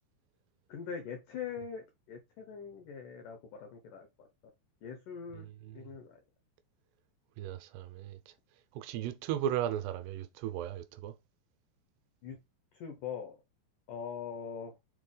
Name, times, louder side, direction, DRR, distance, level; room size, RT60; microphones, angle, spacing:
voice 1, 0.7-4.3 4.8-5.5 5.8-6.2 12.2-12.4 12.7-13.4 13.9-14.7, left 7 dB, 80° left, 1.8 m, -42 dB
voice 2, 5.3-5.8 7.4-8.2 8.8-11.1, right 11 dB, 80° right, 2.5 m, -36 dB
6.9 x 4.0 x 3.8 m
omnidirectional pair, 5.0 m